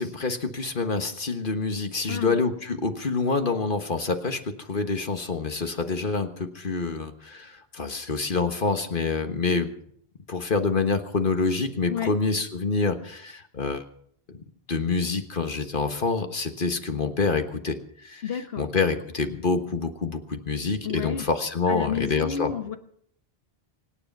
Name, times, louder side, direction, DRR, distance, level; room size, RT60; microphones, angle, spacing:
voice 1, 0.0-9.7 10.3-13.8 14.3-14.4 14.7-18.2 18.6-22.5, left 4 dB, 55° left, 7 dB, 1.5 m, -27 dB
voice 2, 2.1-2.4 11.9-12.1 18.2-18.6 20.8-21.3 21.7-22.8, left 8 dB, 70° left, 7 dB, 1.5 m, -30 dB
25.5 x 9.9 x 5.4 m, 0.65 s
omnidirectional pair, 1.0 m